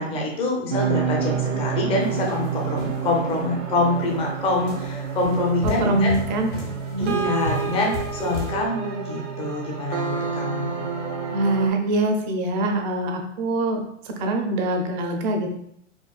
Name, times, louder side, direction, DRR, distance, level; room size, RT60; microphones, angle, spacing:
voice 1, 0.0-6.1 7.0-10.8, left 2 dB, 15° left, -1 dB, 0.5 m, -25 dB
sound 1, 0.7-11.7, right 6 dB, 70° right, 0.9 m, -29 dB
sound 2, 2.0-3.4 3.9-4.2 4.7-8.5, left 5 dB, 75° left, 1.0 m, -34 dB
voice 2, 5.6-7.2 11.3-15.5, right 2 dB, 35° right, 3 dB, 0.6 m, -24 dB
4.3 x 2.2 x 2.3 m, 0.72 s
hypercardioid pair, 130°, 37 cm